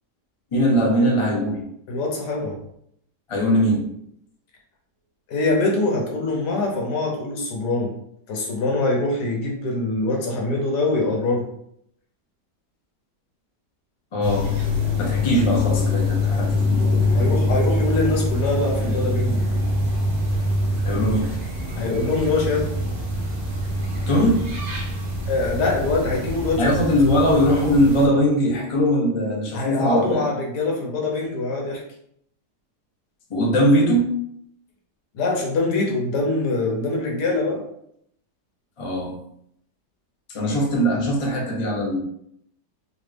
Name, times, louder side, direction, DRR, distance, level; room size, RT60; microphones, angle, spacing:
voice 1, 0.5-1.6 3.3-3.9 14.1-14.5 15.0-16.8 17.1-17.3 20.8-21.3 24.1-24.4 26.6-30.3 33.3-34.1 38.8-39.2 40.3-42.0, equal, 50° left, -1 dB, 0.3 m, -20 dB
voice 2, 1.9-2.6 5.3-7.9 8.3-11.5 17.1-19.4 21.8-22.7 25.3-26.7 29.5-31.8 35.1-37.6, left 2 dB, 75° left, -1 dB, 1.5 m, -23 dB
sound 1, 14.2-28.1, left 2 dB, 65° right, 1.7 m, -24 dB
4.0 x 2.4 x 3.3 m, 0.71 s
omnidirectional pair, 1.8 m